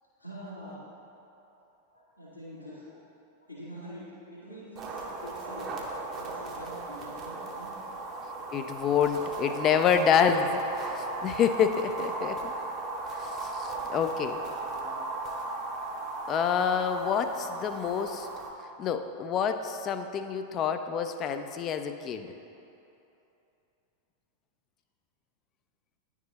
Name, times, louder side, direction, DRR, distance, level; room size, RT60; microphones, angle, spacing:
voice 1, 0.2-1.1 1.5-1.6 1.9-2.9 3.4-4.1 4.3-5.7 6.1-7.7 14.6-15.1 15.7-15.8, equal, 85° left, -8 dB, 1.3 m, -45 dB
sound 1, 4.8-18.5, right 3 dB, 30° right, 0.8 m, -36 dB
voice 2, 8.5-12.5 13.1-14.4 16.3-18.3 18.8-22.3, left 7 dB, 30° left, 8 dB, 0.3 m, -27 dB
9.9 x 4.7 x 2.8 m, 2.8 s
figure-of-eight pair, 90°, 0 cm